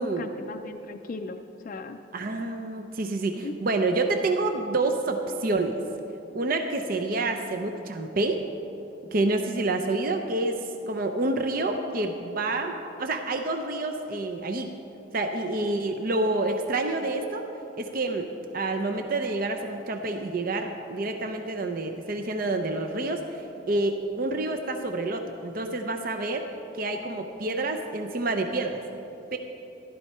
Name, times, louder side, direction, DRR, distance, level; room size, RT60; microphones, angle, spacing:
voice 1, 0.0-2.0 3.4-3.6 11.4-11.5, left 3 dB, 45° left, 5 dB, 0.4 m, -38 dB
voice 2, 2.1-5.8 6.3-8.4 9.1-10.6 10.9-14.7 15.1-17.5 17.8-26.5 26.7-28.8 29.3-29.4, right 2 dB, 50° right, 5 dB, 0.6 m, -28 dB
13.0 x 12.0 x 4.3 m, 3.0 s
head